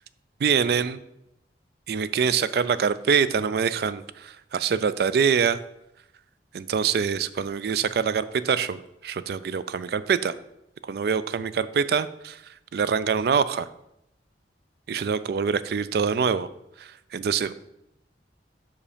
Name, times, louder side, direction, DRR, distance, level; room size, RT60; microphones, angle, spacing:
voice 1, 0.4-1.0 1.9-5.6 6.5-10.4 10.8-13.7 14.9-16.5 16.8-17.5, right 6 dB, 60° right, 15 dB, 0.3 m, -25 dB
5.6 x 4.9 x 5.0 m, 0.83 s
head